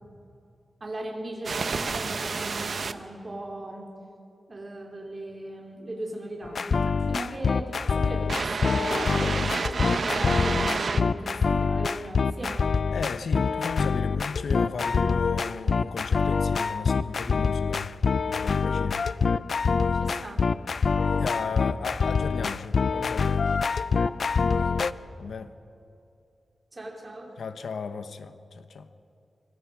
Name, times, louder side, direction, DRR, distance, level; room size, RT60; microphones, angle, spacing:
voice 1, 0.8-3.9 4.5-12.7 20.0-20.5 21.1-21.4 24.0-24.1 24.4-24.8 26.7-27.3, right 1 dB, 30° right, 3.5 m, -38 dB
sound 1, 1.5-2.9 8.3-11.0, right 4 dB, 55° right, 0.8 m, -29 dB
sound 2, 6.4-24.9, left 5 dB, 60° left, 0.5 m, -25 dB
voice 2, 12.9-17.9 18.3-19.1 21.1-23.5 25.2-25.5 27.4-28.9, left 5 dB, 85° left, 1.0 m, -35 dB
25.5 x 24.0 x 5.0 m
wide cardioid pair, 130°, 0 cm